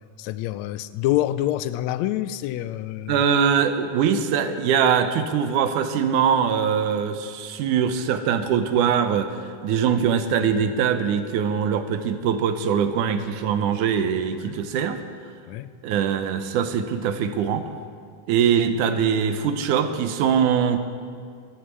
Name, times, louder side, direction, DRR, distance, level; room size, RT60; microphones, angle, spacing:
voice 1, 0.2-3.2 14.4-14.6 15.5-15.7, left 14 dB, 80° left, 14 dB, 1.6 m, -26 dB
voice 2, 3.1-15.0 15.8-17.7 18.3-20.8, right 7 dB, 85° right, 9 dB, 2.4 m, -22 dB
13.5 x 12.5 x 8.3 m, 2.2 s
omnidirectional pair, 3.5 m